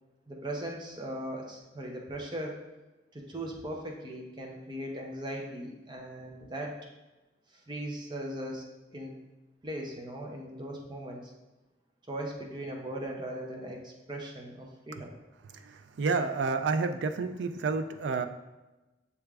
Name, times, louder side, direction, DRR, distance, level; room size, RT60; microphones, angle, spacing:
voice 1, 0.3-2.6 3.1-6.8 7.5-8.7 8.9-9.1 9.6-11.3 12.1-15.1, right 1 dB, 25° right, 0 dB, 0.5 m, -39 dB
voice 2, 16.0-18.3, right 4 dB, 75° right, 8 dB, 0.4 m, -29 dB
6.8 x 3.3 x 2.3 m, 1.1 s
head